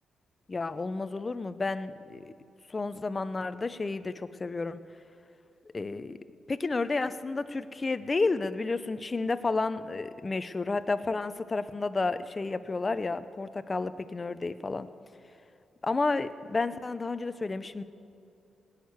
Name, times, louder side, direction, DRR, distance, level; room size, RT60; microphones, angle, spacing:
voice 1, 0.5-2.3 2.7-4.8 5.7-6.2 6.5-14.9 15.8-17.8, left 3 dB, 30° left, 12 dB, 0.6 m, -31 dB
18.0 x 6.6 x 9.6 m, 2.6 s
cardioid pair, 95°, 0 cm